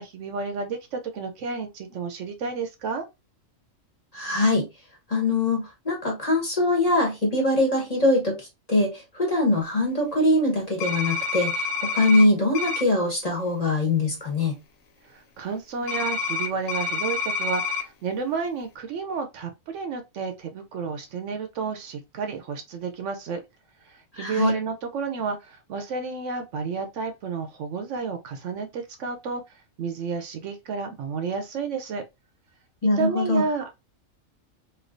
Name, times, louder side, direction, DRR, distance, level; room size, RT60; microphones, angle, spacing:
voice 1, 0.0-3.1 15.0-23.4 23.8-29.4 29.8-32.0 33.0-33.7, right 5 dB, 70° right, 0.9 m, -31 dB
voice 2, 4.1-4.6 5.1-14.5 24.1-24.5 32.8-33.4, left 2 dB, 30° left, 1.3 m, -23 dB
sound 1, 10.8-12.2 12.5-12.8 15.9-17.8, left 4 dB, 80° left, 1.2 m, -28 dB
3.2 x 3.0 x 2.5 m
omnidirectional pair, 1.4 m